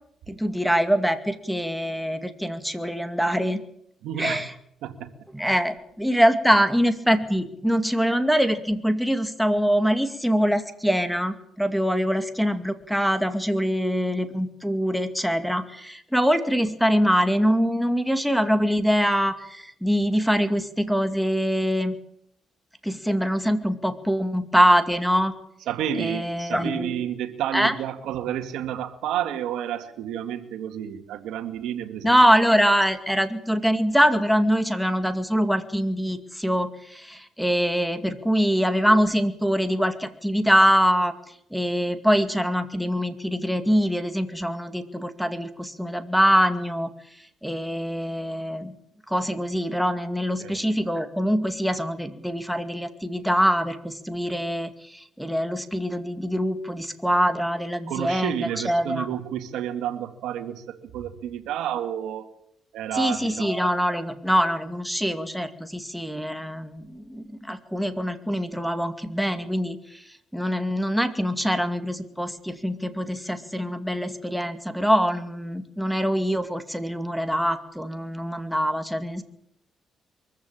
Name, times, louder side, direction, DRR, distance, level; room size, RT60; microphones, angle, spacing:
voice 1, 0.3-3.6 4.2-4.5 5.3-22.0 22.8-25.3 26.0-27.0 27.5-27.7 32.0-41.1 41.5-46.9 47.4-48.7 49.1-59.1 62.9-70.0 70.3-79.2, equal, ahead, 8 dB, 2.3 m, -24 dB
voice 2, 4.0-4.5 4.8-5.1 25.7-32.1 50.4-50.7 57.9-62.3 62.7-63.5, right 10 dB, 90° right, 8 dB, 2.2 m, -30 dB
23.5 x 15.0 x 8.8 m, 0.72 s
cardioid pair, 90°, 0 cm